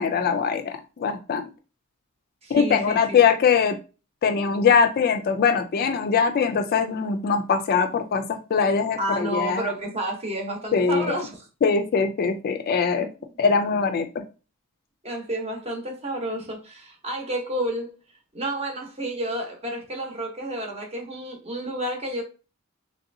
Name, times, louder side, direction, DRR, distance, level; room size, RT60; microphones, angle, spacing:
voice 1, 0.0-1.5 2.5-3.8 4.2-9.6 10.7-11.2 11.6-13.1 13.4-14.2, left 6 dB, 45° left, 0.3 m, -22 dB
voice 2, 2.4-3.2 9.0-11.5 13.2-13.3 15.0-17.9 18.3-22.2, right 1 dB, 30° right, 0.9 m, -30 dB
3.2 x 2.7 x 2.6 m
head